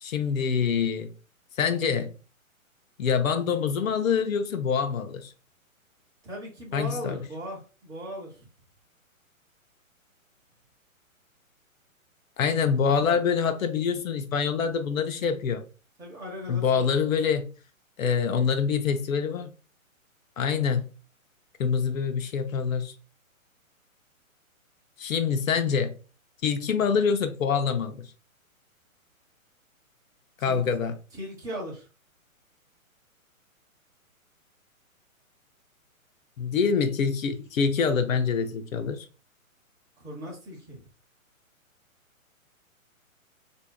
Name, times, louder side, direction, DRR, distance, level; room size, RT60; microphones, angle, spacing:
voice 1, 0.0-1.1 1.6-2.1 3.0-5.3 6.7-7.2 12.4-15.6 16.5-17.4 18.0-19.5 20.4-20.9 21.6-22.9 25.0-25.9 26.4-28.1 30.4-30.9 36.4-39.1, left 6 dB, 70° left, 0.7 m, -25 dB
voice 2, 6.2-8.5 16.0-16.9 17.1-17.3 30.4-30.6 31.1-31.9 40.0-40.8, equal, 10° right, 1.0 m, -38 dB
4.4 x 2.7 x 2.2 m
figure-of-eight pair, 130°, 42 cm